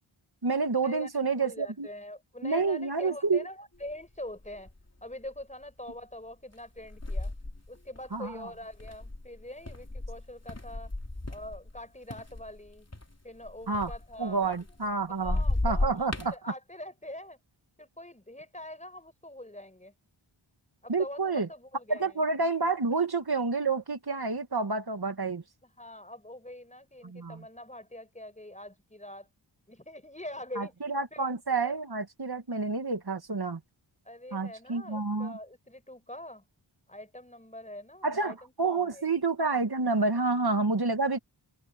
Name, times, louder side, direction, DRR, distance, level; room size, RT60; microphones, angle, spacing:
voice 1, 0.4-1.9 2.4-3.5 8.1-8.4 13.7-13.9 14.2-16.3 20.9-21.5 21.9-25.4 27.0-27.4 30.6-33.6 34.3-35.4 38.0-41.2, right 3 dB, 50° right, 2.2 m, -29 dB
voice 2, 1.4-4.7 5.0-7.3 7.7-10.9 11.3-12.9 13.2-14.7 15.1-17.4 17.8-19.9 20.8-22.2 25.6-29.3 29.7-30.8 31.1-31.3 31.6-31.8 34.1-36.4 36.9-39.2, left 1 dB, 15° left, 5.5 m, -44 dB
sound 1, 3.9-4.0 4.4-4.9 5.4-5.6 6.5-11.8 12.1-14.9 15.2-16.3, left 2 dB, 30° left, 3.6 m, -34 dB
wide cardioid pair, 45°, 49 cm